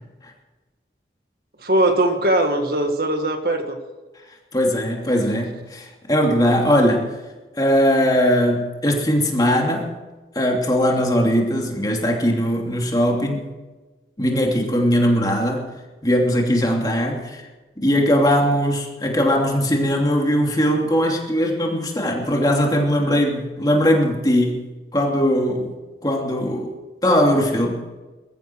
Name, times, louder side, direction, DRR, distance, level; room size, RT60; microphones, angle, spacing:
voice 1, 1.6-3.8 23.1-23.2, right 1 dB, 60° right, 5 dB, 1.8 m, -20 dB
voice 2, 4.5-7.1 7.6-9.9 10.3-13.5 14.2-15.7 16.0-17.5 17.8-24.6 24.9-25.7 26.0-26.7 27.0-27.8, equal, 20° left, 0 dB, 2.8 m, -20 dB
21.0 x 14.0 x 4.7 m, 1.2 s
head